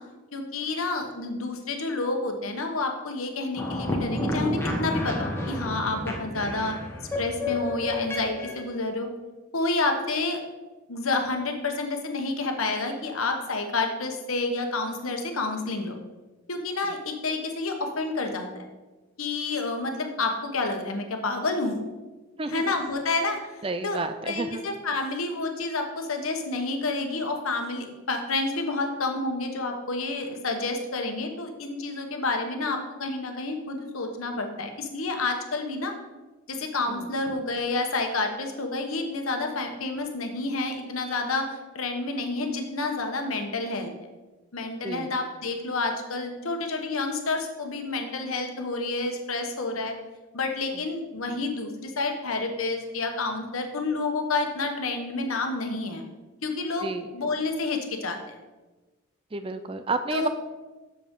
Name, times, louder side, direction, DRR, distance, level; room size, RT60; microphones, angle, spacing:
voice 1, 0.3-6.8 7.2-9.1 9.5-10.4 10.9-16.0 16.5-18.7 19.2-21.8 22.5-23.5 23.8-24.0 24.2-35.9 36.5-43.9 44.5-49.9 50.3-56.0 56.4-58.4 60.1-60.3, left 3 dB, 80° left, 4 dB, 1.1 m, -29 dB
sound 1, 3.6-8.7, left 1 dB, 10° left, 1.0 m, -30 dB
voice 2, 23.6-24.6 36.9-37.1 44.8-45.1 56.8-57.1 59.3-60.3, right 3 dB, 25° right, 9 dB, 0.4 m, -31 dB
8.1 x 7.0 x 3.7 m, 1.2 s
head